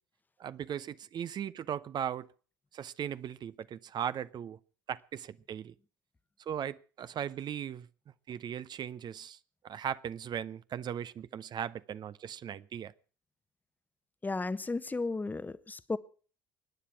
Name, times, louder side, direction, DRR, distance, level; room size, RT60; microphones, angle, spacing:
voice 1, 0.4-2.3 2.7-4.6 4.9-5.7 6.4-7.9 8.3-9.4 9.6-12.9, right 9 dB, 45° right, 0.7 m, -38 dB
voice 2, 14.2-16.0, left 3 dB, 15° left, 1.1 m, -34 dB
24.0 x 10.0 x 5.9 m
hypercardioid pair, 60°, 10 cm